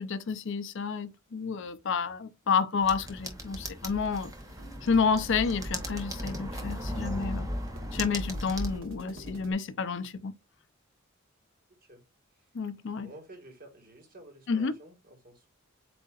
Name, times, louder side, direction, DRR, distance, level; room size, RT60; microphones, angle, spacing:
voice 1, 0.0-4.3 4.8-7.5 7.9-10.3 12.5-13.1 14.5-14.8, left 5 dB, 60° left, 0.5 m, -30 dB
sound 1, 2.8-8.8, equal, 15° right, 0.9 m, -37 dB
sound 2, 3.9-9.5, right 1 dB, 70° right, 1.2 m, -47 dB
voice 2, 13.0-15.5, right 1 dB, 45° right, 1.5 m, -51 dB
7.8 x 2.7 x 2.4 m
head